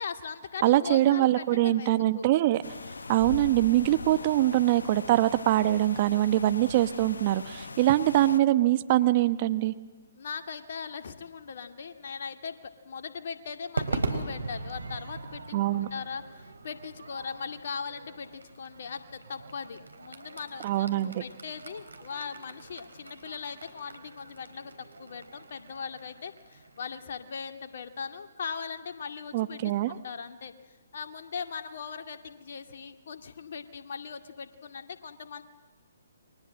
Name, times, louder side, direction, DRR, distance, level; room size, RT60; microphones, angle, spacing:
voice 1, 0.0-2.4 5.0-5.2 10.2-12.6 12.8-30.5 30.9-35.4, left 6 dB, 55° left, 6 dB, 2.2 m, -39 dB
voice 2, 0.6-2.6 3.1-9.7 15.5-15.9 20.6-21.2 29.3-30.0, right 14 dB, 35° right, 11 dB, 1.1 m, -23 dB
sound 1, 2.6-8.4, left 4 dB, 75° left, 1.0 m, -41 dB
Crowd / Fireworks, 13.8-28.2, right 3 dB, 80° right, 3.7 m, -40 dB
29.5 x 23.5 x 7.6 m, 1.3 s
figure-of-eight pair, 135°, 0 cm